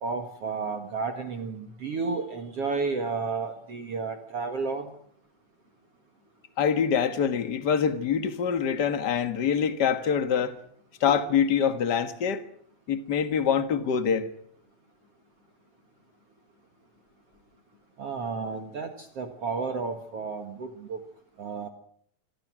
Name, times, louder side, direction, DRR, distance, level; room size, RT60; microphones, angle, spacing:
voice 1, 0.0-4.9 18.0-21.0 21.4-21.7, right 4 dB, 50° right, 2.3 m, -32 dB
voice 2, 6.6-10.6 11.0-12.4 12.9-14.3, left 7 dB, 60° left, 1.1 m, -25 dB
27.0 x 24.0 x 6.2 m
omnidirectional pair, 4.2 m